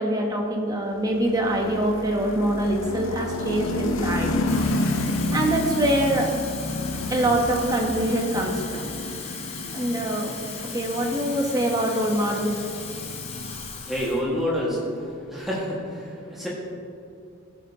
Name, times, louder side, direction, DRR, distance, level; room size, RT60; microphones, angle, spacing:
voice 1, 0.0-4.4 5.3-6.3 7.1-8.9 9.7-10.4 10.6-12.5, right 1 dB, 15° right, 1 dB, 0.8 m, -24 dB
sound 1, 1.0-14.2, left 2 dB, 65° left, 0.6 m, -30 dB
Water tap faucet / Fill (with liquid), 4.3-14.2 14.6-14.9, left 6 dB, 30° left, 0.6 m, -37 dB
voice 2, 13.8-14.8 15.3-15.8 16.4-16.5, equal, ahead, -6 dB, 1.4 m, -26 dB
14.5 x 5.2 x 2.7 m, 2.4 s
head